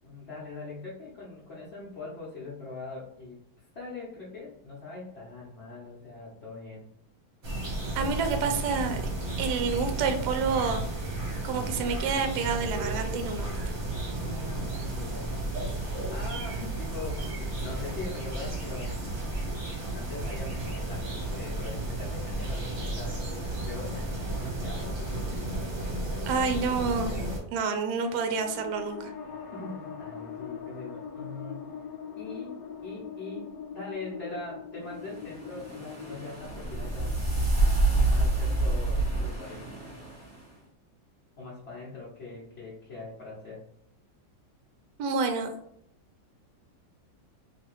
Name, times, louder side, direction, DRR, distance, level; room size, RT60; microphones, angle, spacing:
voice 1, 0.0-3.4 3.7-6.8 7.8-8.3 14.1-15.4 15.9-19.0 19.9-23.2 23.6-25.7 29.5-31.7 32.2-37.2 37.8-39.7 41.4-43.6, left 3 dB, 45° left, -7 dB, 0.9 m, -42 dB
sound 1, 7.4-27.4, right 2 dB, 45° right, 1.1 m, -33 dB
voice 2, 8.0-9.0 9.4-11.1 11.4-13.7 26.3-27.1 27.5-29.1 45.0-45.5, right 5 dB, 75° right, 6 dB, 1.0 m, -29 dB
sound 2, 28.0-38.7, left 7 dB, 75° left, 1.2 m, -42 dB
sound 3, 35.1-40.4, right 2 dB, 30° right, 1.3 m, -27 dB
3.3 x 2.9 x 3.0 m, 0.72 s
omnidirectional pair, 2.1 m